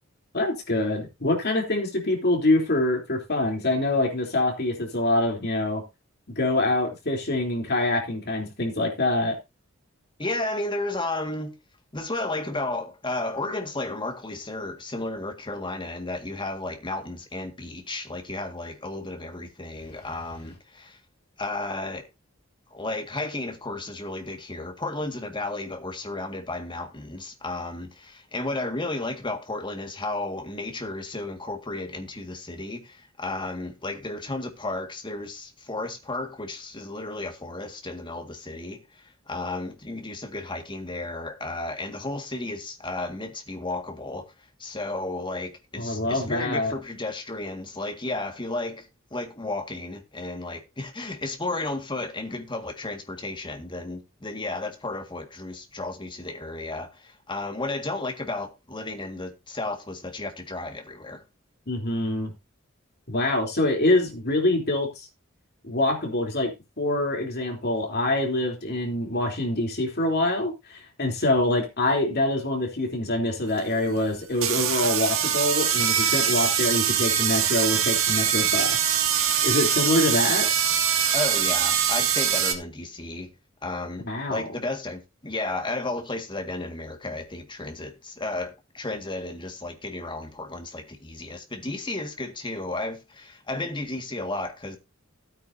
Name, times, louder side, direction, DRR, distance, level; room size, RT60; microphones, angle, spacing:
voice 1, 0.3-5.8 6.3-9.4 45.8-46.7 61.7-62.3 63.1-64.9 65.6-66.5 66.8-79.0 79.4-80.5 84.1-84.5, left 1 dB, 50° left, 3.5 m, -25 dB
voice 2, 10.2-11.5 11.9-21.0 21.4-22.1 22.7-44.3 44.6-61.2 81.1-83.3 83.6-94.8, left 2 dB, 25° left, 1.9 m, -33 dB
sound 1, 73.6-73.7 74.4-82.5, right 9 dB, 85° right, 2.0 m, -23 dB
15.5 x 9.0 x 2.7 m
head